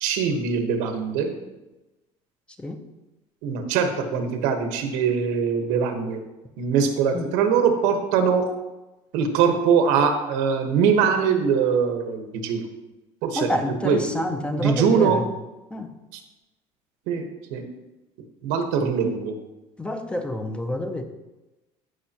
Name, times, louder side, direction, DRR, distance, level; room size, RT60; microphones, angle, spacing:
voice 1, 0.0-1.4 3.4-6.2 6.6-8.5 9.1-12.7 13.2-13.5 13.8-14.2 14.6-15.2 16.1-16.2 17.1-17.2 17.5-17.6 18.4-19.3, right 6 dB, 90° right, 5 dB, 1.3 m, -22 dB
voice 2, 13.4-15.2 15.7-15.9 19.8-21.0, left 1 dB, 10° left, 6 dB, 0.6 m, -28 dB
14.5 x 5.5 x 2.9 m, 1.0 s
cardioid pair, 150°, 13 cm